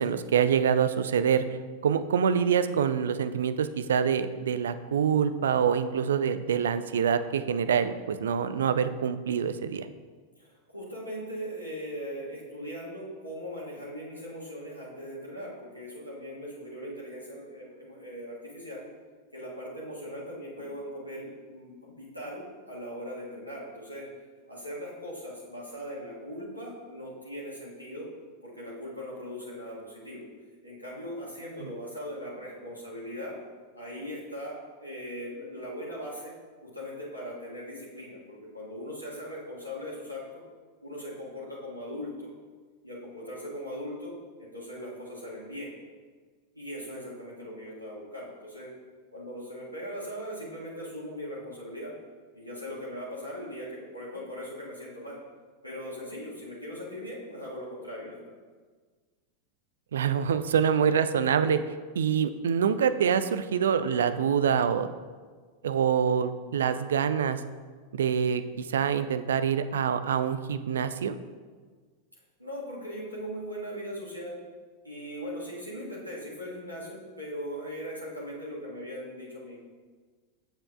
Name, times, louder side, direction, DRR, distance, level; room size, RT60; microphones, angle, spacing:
voice 1, 0.0-1.4 1.8-9.9 31.6-31.7 59.9-61.6 62.0-64.9 65.6-67.4 67.9-71.2, right 7 dB, 65° right, 11 dB, 0.3 m, -25 dB
voice 2, 10.4-18.9 19.3-24.1 24.5-28.1 28.4-30.2 30.6-33.3 33.7-36.3 36.6-40.4 40.8-42.3 42.8-45.7 46.5-48.7 49.1-51.9 52.3-55.2 55.6-58.2 72.4-74.4 74.8-79.6, equal, 90° right, -7 dB, 1.6 m, -39 dB
7.4 x 7.1 x 2.4 m, 1.5 s
figure-of-eight pair, 90°, 0 cm